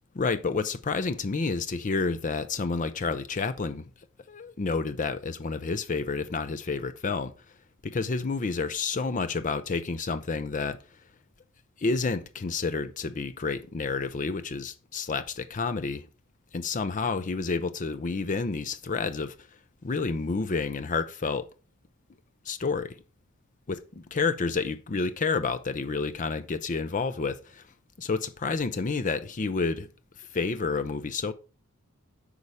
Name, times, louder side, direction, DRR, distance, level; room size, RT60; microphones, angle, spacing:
voice 1, 0.2-3.9 4.3-7.3 7.8-10.8 11.8-16.1 16.5-19.3 19.8-21.5 22.5-23.0 23.7-27.6 28.0-29.9 30.2-31.3, left 4 dB, 35° left, 0.5 m, -29 dB
8.4 x 5.5 x 4.9 m
head